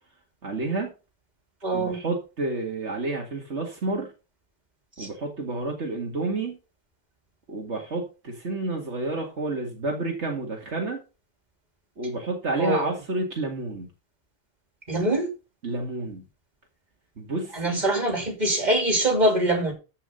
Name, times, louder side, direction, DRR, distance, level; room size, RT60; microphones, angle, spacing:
voice 1, 0.4-0.9 1.7-4.1 5.0-6.6 7.5-11.0 12.0-13.9 15.6-16.3 17.2-17.9, right 2 dB, 70° right, 2.3 m, -30 dB
voice 2, 1.6-2.0 5.0-5.1 12.6-12.8 14.9-15.3 17.5-19.7, right 1 dB, 40° right, 3.5 m, -23 dB
14.0 x 5.5 x 5.4 m
omnidirectional pair, 1.2 m